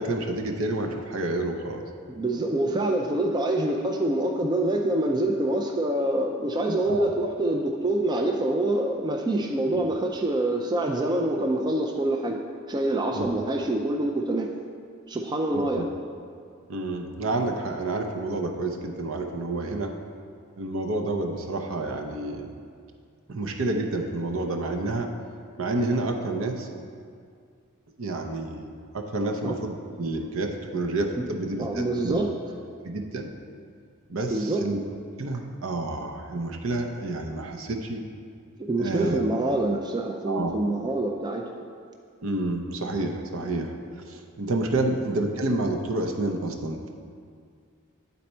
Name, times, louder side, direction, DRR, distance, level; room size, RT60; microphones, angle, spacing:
voice 1, 0.0-1.9 6.9-7.1 9.7-9.8 13.1-13.3 15.5-15.8 16.7-20.0 20.6-22.5 23.3-25.1 25.6-26.7 28.0-28.7 28.9-32.2 32.8-33.3 34.1-34.8 35.2-38.0 38.8-39.2 40.3-40.5 42.2-43.7 44.1-46.9, right 2 dB, 65° right, 3 dB, 0.6 m, -29 dB
voice 2, 2.1-12.4 12.7-14.5 15.1-15.8 29.4-29.6 31.2-31.3 31.6-32.3 34.3-34.6 38.6-41.5 44.8-44.9, right 1 dB, 20° right, 2 dB, 0.3 m, -26 dB
9.1 x 4.2 x 4.3 m, 2.2 s
head